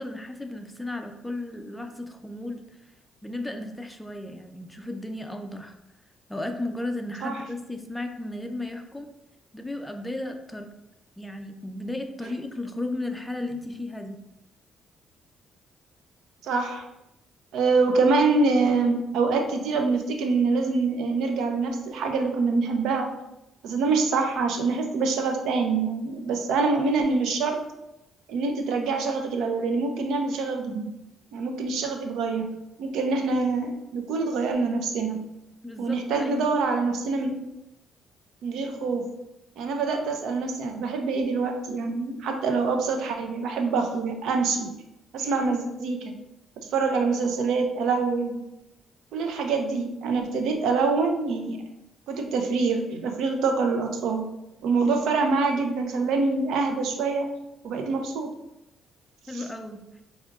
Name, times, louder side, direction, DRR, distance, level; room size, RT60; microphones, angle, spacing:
voice 1, 0.0-2.6 3.2-5.7 6.3-9.1 9.5-10.7 11.2-14.2 35.6-36.5 59.3-59.8, left 2 dB, 10° left, 5 dB, 0.4 m, -34 dB
voice 2, 16.4-16.8 17.5-23.1 23.6-27.6 28.3-30.9 31.3-32.5 32.8-35.2 35.8-37.4 38.4-39.1 39.6-44.7 45.1-46.1 46.6-48.4 49.1-51.6 52.1-54.3 54.6-57.3 57.6-58.3 59.3-59.4, right 4 dB, 80° right, 4 dB, 0.5 m, -25 dB
5.8 x 2.7 x 2.4 m, 0.91 s
cardioid pair, 90°, 0 cm